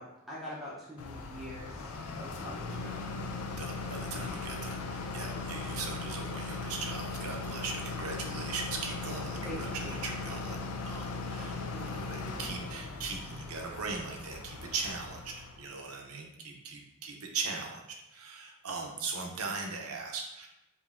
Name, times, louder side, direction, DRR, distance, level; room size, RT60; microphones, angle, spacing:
voice 1, 0.0-3.1 9.4-10.0 11.7-12.3, equal, ahead, -8 dB, 0.6 m, -44 dB
sound 1, 1.0-15.7, left 3 dB, 85° left, 0.5 m, -38 dB
voice 2, 3.6-17.8 18.1-20.5, right 4 dB, 80° right, 2 dB, 0.7 m, -39 dB
5.2 x 2.7 x 2.5 m, 0.92 s
head